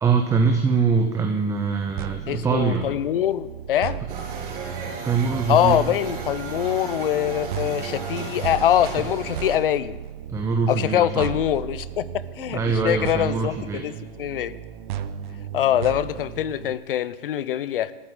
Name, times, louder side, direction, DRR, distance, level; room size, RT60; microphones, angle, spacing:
voice 1, 0.0-2.9 5.0-5.9 9.0-9.1 10.3-11.3 12.5-13.9, right 5 dB, 10° right, 0.8 m, -23 dB
sound 1, 2.0-16.7, right 10 dB, 50° right, 1.1 m, -35 dB
voice 2, 2.3-4.0 5.5-10.0 10.7-12.0 12.4-14.5 15.5-17.9, left 11 dB, 60° left, 0.9 m, -23 dB
sound 2, 4.1-9.6, right 4 dB, 30° right, 5.2 m, -35 dB
22.0 x 14.0 x 3.9 m
hypercardioid pair, 130°, 31 cm